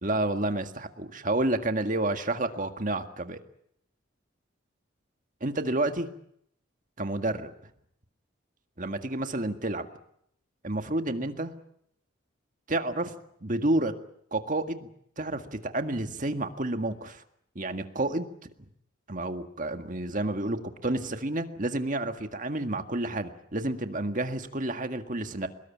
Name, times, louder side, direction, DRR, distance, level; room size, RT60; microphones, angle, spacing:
voice 1, 0.0-3.4 5.4-6.1 7.0-7.5 8.8-9.9 10.6-11.5 12.7-13.1 13.4-13.9 14.3-14.9 15.2-17.2 17.6-18.3 19.1-25.5, right 2 dB, 40° right, 7 dB, 1.8 m, -30 dB
23.5 x 21.0 x 8.6 m, 0.72 s
head